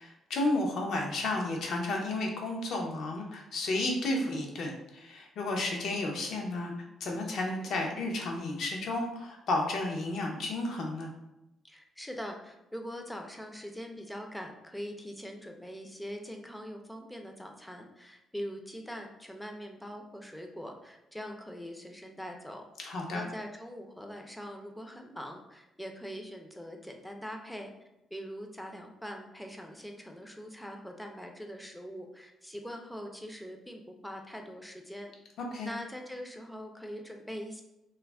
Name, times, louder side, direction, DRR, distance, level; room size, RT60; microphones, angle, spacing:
voice 1, 0.0-6.7 7.0-11.1 22.8-23.2 35.4-35.7, left 2 dB, 70° left, 1 dB, 0.6 m, -32 dB
voice 2, 11.6-27.7 28.1-35.1 35.6-37.6, equal, 5° left, 3 dB, 0.4 m, -42 dB
2.3 x 2.0 x 3.3 m, 0.92 s
cardioid pair, 90°, 0 cm